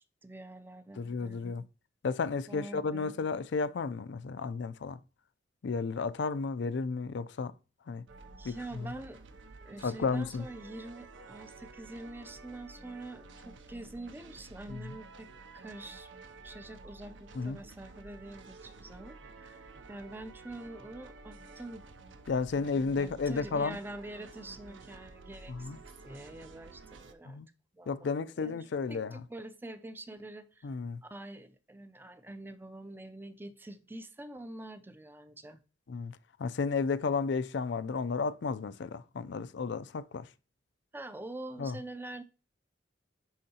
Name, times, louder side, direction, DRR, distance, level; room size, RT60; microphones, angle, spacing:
voice 1, 0.2-1.5 2.5-3.1 8.4-9.2 9.6-16.1 16.4-21.8 22.6-27.4 27.7-30.7 31.0-35.6 40.9-42.2, right 1 dB, 10° right, 0.5 m, -46 dB
voice 2, 1.0-1.7 2.0-5.0 5.6-7.5 7.9-8.0 8.4-8.9 9.8-10.5 14.7-14.9 17.3-17.6 22.3-23.8 25.5-25.8 27.3-27.5 27.9-29.2 30.6-31.0 35.9-40.3 41.6-41.8, left 4 dB, 70° left, 0.4 m, -33 dB
sound 1, 8.1-27.1, right 3 dB, 85° right, 0.6 m, -51 dB
10.5 x 3.7 x 2.8 m
head